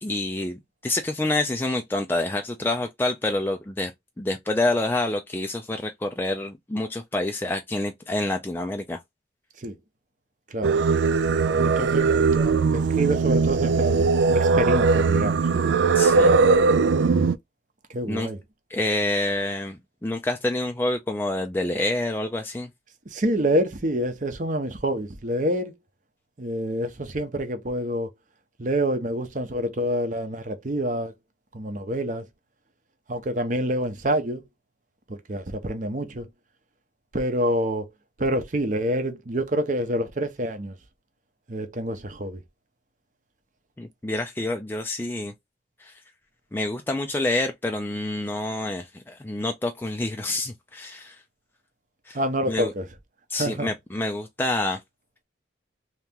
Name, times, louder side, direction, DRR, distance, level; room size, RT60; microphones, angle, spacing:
voice 1, 0.0-3.9 4.2-9.0 15.9-16.3 18.1-18.3 18.7-22.7 43.8-45.3 45.8-45.9 46.5-51.2 52.1-52.2 52.5-52.7 53.3-54.8, left 2 dB, 10° left, 0.4 m, -27 dB
Singing, 10.6-17.4, right 4 dB, 80° right, 0.4 m, -20 dB
voice 2, 11.6-15.6 17.9-18.4 23.1-25.7 26.4-28.1 28.6-31.1 31.5-32.2 33.1-34.4 35.1-36.3 37.1-37.9 38.2-40.8 41.5-42.4 52.1-52.9 53.3-53.7, right 1 dB, 45° right, 0.7 m, -27 dB
2.9 x 2.8 x 3.5 m
head